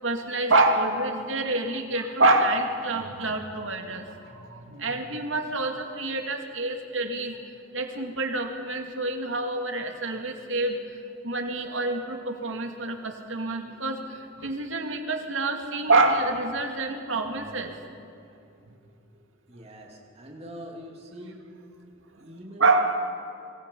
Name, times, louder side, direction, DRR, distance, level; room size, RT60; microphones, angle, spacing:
voice 1, 0.0-4.1 4.3-7.3 7.7-10.8 11.2-14.0 14.4-17.7 22.6-22.9, right 2 dB, 75° right, 4 dB, 2.4 m, -26 dB
voice 2, 19.5-21.4 22.2-22.8, equal, 35° right, 0 dB, 2.9 m, -43 dB
26.0 x 24.5 x 5.5 m, 2.5 s
head